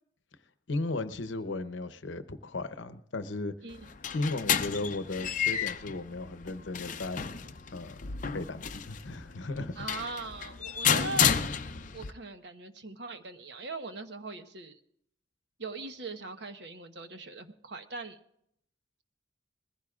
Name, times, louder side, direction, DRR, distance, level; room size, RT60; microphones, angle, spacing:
voice 1, 0.7-3.5 4.1-7.2 7.7-8.0 8.3-9.7, left 2 dB, 75° left, 0.8 m, -35 dB
sound 1, 3.7-12.1, left 8 dB, 45° left, 0.6 m, -31 dB
voice 2, 9.8-11.3 11.9-14.8 15.6-18.2, right 3 dB, 60° right, 1.1 m, -40 dB
21.0 x 15.5 x 2.5 m
head